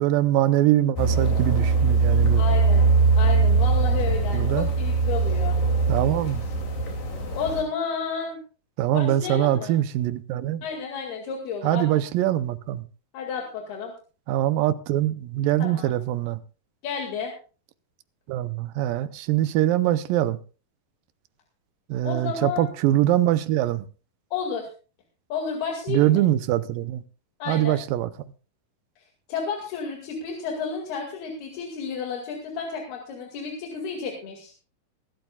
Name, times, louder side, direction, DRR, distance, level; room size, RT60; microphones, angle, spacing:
voice 1, 0.0-2.4 4.3-4.7 5.9-6.5 8.8-10.6 11.6-12.8 14.3-16.4 18.3-20.4 21.9-23.9 25.9-27.0 27.5-28.1, right 13 dB, 75° right, 2.3 m, -23 dB
sound 1, 1.0-7.6, right 4 dB, 65° left, 4.2 m, -21 dB
voice 2, 2.4-5.6 7.3-8.4 8.9-9.7 10.6-12.0 13.1-13.9 15.6-15.9 16.8-17.3 22.0-22.7 24.3-24.7 25.3-26.2 27.4-27.8 29.0-34.5, left 6 dB, 90° left, 4.2 m, -31 dB
22.0 x 12.5 x 2.4 m
omnidirectional pair, 4.3 m